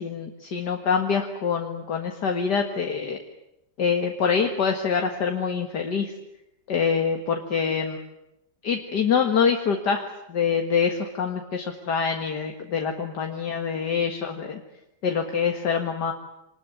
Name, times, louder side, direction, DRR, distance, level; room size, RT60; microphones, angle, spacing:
voice 1, 0.0-3.2 3.8-6.1 6.7-8.0 8.6-14.6 15.0-16.1, left 6 dB, 65° left, 4 dB, 2.3 m, -25 dB
26.5 x 20.0 x 9.4 m, 0.87 s
omnidirectional pair, 1.9 m